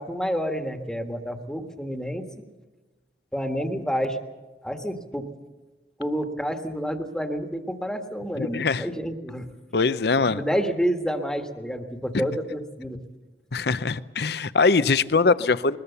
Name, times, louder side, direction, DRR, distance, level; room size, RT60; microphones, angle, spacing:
voice 1, 0.0-2.3 3.3-4.2 4.6-5.3 6.0-9.5 10.3-13.0, equal, 5° left, 6 dB, 1.5 m, -29 dB
voice 2, 8.4-8.9 9.7-10.4 12.1-12.2 13.5-15.8, left 4 dB, 60° left, 15 dB, 0.7 m, -22 dB
21.5 x 20.5 x 6.9 m, 1.2 s
head